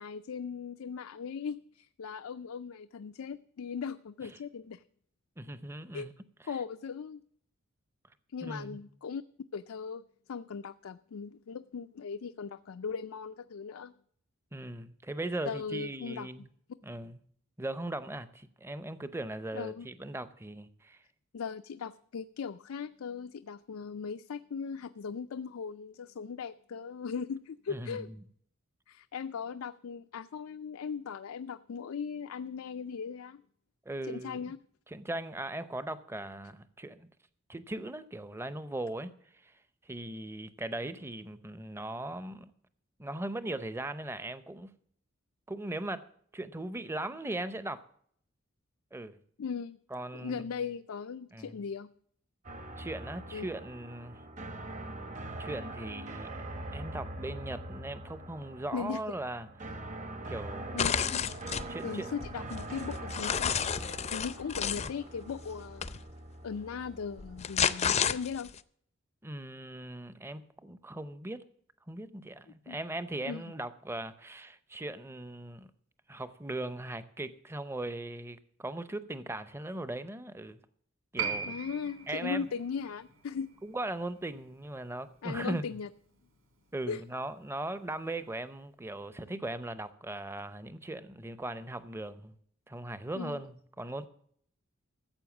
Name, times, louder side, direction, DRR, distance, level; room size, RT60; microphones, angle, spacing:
voice 1, 0.0-4.8 5.9-6.1 6.5-7.2 8.3-9.2 9.5-10.0 10.3-13.9 15.5-16.3 19.5-19.9 21.3-28.1 28.9-33.4 34.0-34.6 49.4-49.8 50.1-51.9 53.3-53.5 58.7-59.0 60.7-61.2 61.8-63.5 64.1-65.9 66.4-68.5 72.7-72.8 73.2-73.4 81.4-83.5 85.2-85.9 86.9-87.0 93.1-93.4, left 6 dB, 90° left, 0.4 m, -38 dB
voice 2, 5.4-6.1 8.4-8.8 14.5-16.5 16.8-17.2 17.6-21.0 27.7-28.0 33.9-34.5 34.9-37.1 37.5-39.1 39.4-39.5 39.9-42.5 43.0-44.7 45.5-46.1 46.3-47.8 48.9-49.2 49.9-50.4 51.3-51.6 52.8-54.2 55.4-56.3 56.7-59.8 60.3-61.3 61.7-62.1 69.2-71.4 71.9-75.7 76.1-80.6 81.1-81.5 82.1-82.5 83.6-85.8 86.7-92.3 92.7-94.1, right 1 dB, 10° right, 0.6 m, -39 dB
sound 1, 52.4-68.4, right 1 dB, 35° right, 1.0 m, -43 dB
sound 2, 60.8-61.7 62.2-64.9 65.8-66.0 67.2-68.6, left 7 dB, 30° left, 0.5 m, -30 dB
Piano, 81.2-88.1 88.4-88.5, right 6 dB, 85° right, 3.4 m, -42 dB
14.5 x 7.8 x 7.1 m
head